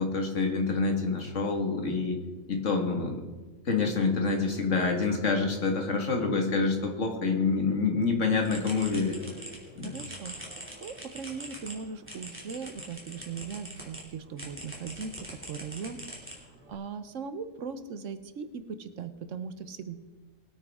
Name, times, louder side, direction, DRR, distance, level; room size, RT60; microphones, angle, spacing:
voice 1, 0.0-2.2 2.5-3.2 3.7-9.2 9.8-10.0, left 4 dB, 70° left, 2 dB, 2.1 m, -27 dB
sound 1, 8.4-14.0 14.4-16.7, equal, 10° right, 2.7 m, -43 dB
voice 2, 9.8-10.4 10.8-20.0, right 5 dB, 75° right, 11 dB, 1.2 m, -39 dB
20.5 x 9.2 x 3.6 m, 1.3 s
omnidirectional pair, 1.3 m